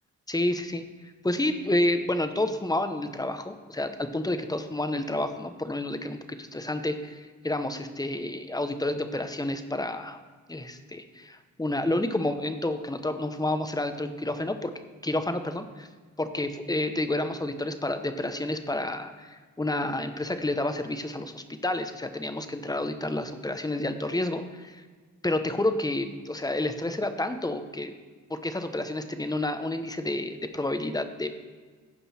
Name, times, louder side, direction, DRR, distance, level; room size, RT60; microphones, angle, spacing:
voice 1, 0.3-0.8 1.2-10.2 10.5-14.7 15.0-15.9 16.2-24.8 25.2-27.9 28.3-31.3, left 1 dB, 10° left, 8 dB, 0.9 m, -29 dB
15.0 x 5.4 x 4.2 m, 1.5 s
cardioid pair, 80°, 31 cm